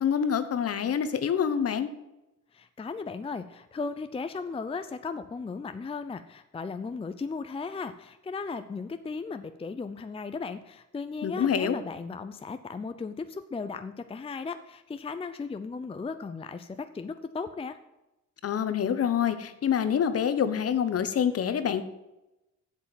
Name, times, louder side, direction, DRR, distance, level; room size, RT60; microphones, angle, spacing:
voice 1, 0.0-1.9 11.2-11.8 18.4-21.8, left 8 dB, 50° left, 11 dB, 1.1 m, -26 dB
voice 2, 2.5-17.8, left 4 dB, 20° left, 10 dB, 0.5 m, -36 dB
8.2 x 7.4 x 7.5 m, 0.96 s
cardioid pair, 90°, 30 cm